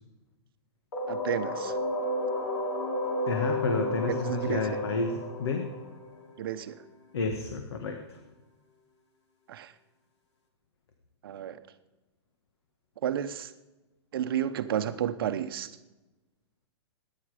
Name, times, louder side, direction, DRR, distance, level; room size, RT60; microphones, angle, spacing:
sound 1, 0.9-6.6, left 1 dB, 90° left, 3.0 m, -32 dB
voice 1, 1.1-1.8 4.1-4.8 6.4-6.8 9.5-9.7 11.2-11.6 13.0-13.5 14.1-15.7, right 10 dB, 55° right, 10 dB, 0.9 m, -32 dB
voice 2, 3.3-5.7 7.1-8.2, left 3 dB, 65° left, 5 dB, 1.7 m, -31 dB
23.5 x 10.0 x 5.0 m, 1.1 s
hypercardioid pair, 170°, 15 cm